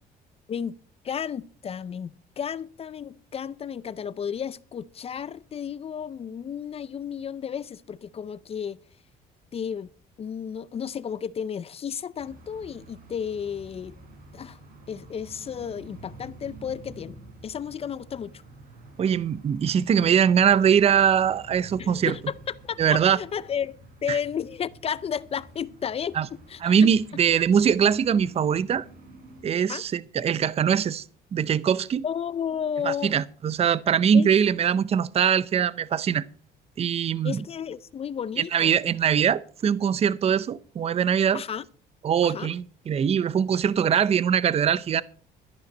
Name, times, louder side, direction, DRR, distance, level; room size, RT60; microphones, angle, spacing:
voice 1, 1.0-8.8 9.5-9.9 10.2-14.0 14.3-14.6 14.9-18.4 21.8-26.9 29.7-29.9 32.0-33.2 34.1-34.3 37.2-38.8 41.3-41.7 42.2-42.5, left 8 dB, 35° left, 0.5 m, -33 dB
sound 1, 12.2-29.4, right 2 dB, 60° right, 6.0 m, -49 dB
voice 2, 19.0-22.1 22.8-23.2 24.1-24.2 26.2-26.3 26.6-28.8 29.4-31.0 31.3-32.0 32.8-36.2 36.8-37.4 38.5-41.4 42.0-45.0, right 8 dB, 35° right, 0.6 m, -22 dB
13.0 x 10.5 x 5.2 m
cardioid pair, 110°, 17 cm